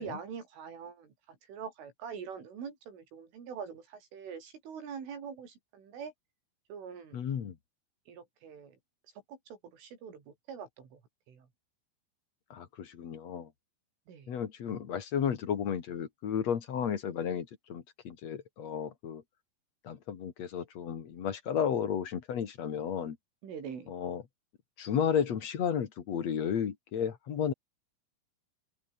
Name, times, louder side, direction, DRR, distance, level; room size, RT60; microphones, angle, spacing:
voice 1, 0.0-6.1 6.7-7.2 8.1-8.8 9.3-11.0 11.3-11.5 14.1-14.4 23.4-23.9, right 6 dB, 75° right, 7.2 m, -44 dB
voice 2, 7.1-7.6 12.5-13.5 14.3-19.2 19.8-23.2 23.9-24.2 24.8-27.5, left 8 dB, 50° left, 2.2 m, -33 dB
open air
omnidirectional pair, 5.7 m